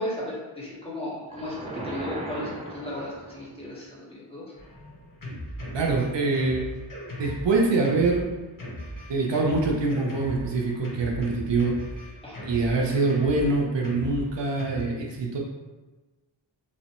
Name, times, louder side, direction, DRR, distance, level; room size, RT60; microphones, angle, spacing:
voice 1, 0.0-4.5 12.2-12.4, left 1 dB, 10° left, -7 dB, 1.0 m, -35 dB
sound 1, 1.3-3.6, right 1 dB, 15° right, 0.4 m, -37 dB
Drum kit, 4.6-14.8, equal, 45° left, 0.9 m, -38 dB
voice 2, 5.7-6.6 7.2-8.3 9.1-11.8 12.5-15.4, right 3 dB, 70° right, -1 dB, 0.5 m, -24 dB
2.9 x 2.0 x 2.8 m, 1.2 s
wide cardioid pair, 50°, 46 cm